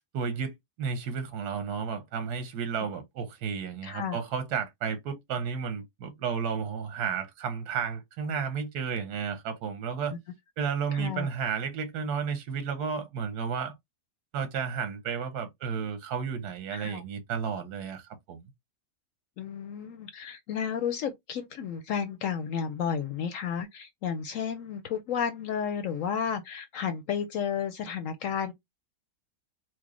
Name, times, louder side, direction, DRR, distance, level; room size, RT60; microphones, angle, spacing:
voice 1, 0.1-10.2 10.6-13.7 14.3-18.5, right 6 dB, 90° right, 1.3 m, -32 dB
voice 2, 3.8-4.2 10.9-11.3 16.7-17.0 19.4-28.5, left 7 dB, 70° left, 0.8 m, -32 dB
4.6 x 2.1 x 3.0 m
omnidirectional pair, 1.6 m